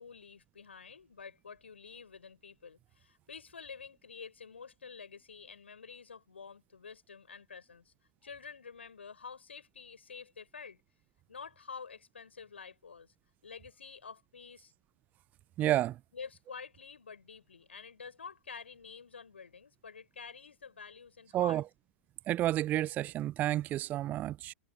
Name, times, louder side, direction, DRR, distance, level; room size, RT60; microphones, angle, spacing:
voice 1, 0.0-7.9 8.2-10.8 11.3-13.1 13.4-14.7 16.1-21.6, left 5 dB, 70° left, 6.8 m, -49 dB
voice 2, 15.6-16.0 21.3-21.6 22.3-24.5, right 14 dB, 25° right, 0.5 m, -30 dB
figure-of-eight pair, 100°, 6 cm